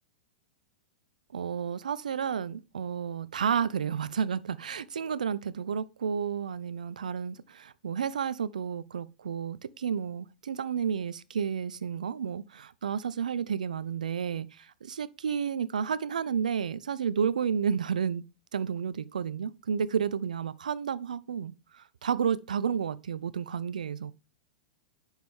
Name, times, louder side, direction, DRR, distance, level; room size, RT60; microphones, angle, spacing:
voice 1, 1.3-18.2 18.5-24.1, right 7 dB, 80° right, 0.7 m, -31 dB
9.4 x 6.6 x 5.3 m
hypercardioid pair, 105°, 4 cm